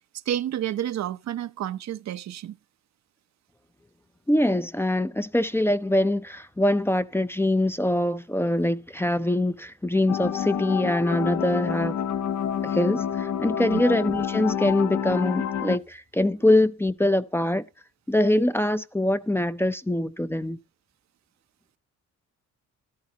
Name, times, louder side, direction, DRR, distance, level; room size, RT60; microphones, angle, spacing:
voice 1, 0.1-2.5 13.7-13.8, right 11 dB, 65° right, 0.7 m, -30 dB
voice 2, 4.3-12.0 12.6-17.6 18.1-20.6, left 1 dB, 10° left, 0.6 m, -24 dB
sound 1, 10.1-15.8, left 9 dB, 65° left, 1.0 m, -28 dB
13.5 x 13.0 x 2.8 m
cardioid pair, 90°, 30 cm